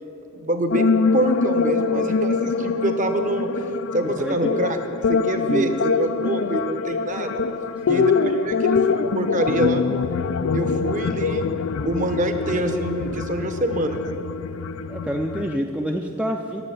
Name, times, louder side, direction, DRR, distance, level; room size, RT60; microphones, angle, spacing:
voice 1, 0.3-3.5 3.9-4.8 5.1-7.4 7.8-9.8 10.5-11.5 11.8-14.1, right 1 dB, 35° right, 7 dB, 0.9 m, -25 dB
sound 1, 0.7-15.6, left 5 dB, 65° left, 0.4 m, -24 dB
voice 2, 4.2-4.5 5.5-5.7 7.9-8.1 14.9-16.6, equal, 5° right, 1 dB, 0.4 m, -27 dB
11.0 x 7.7 x 9.9 m, 3.0 s
head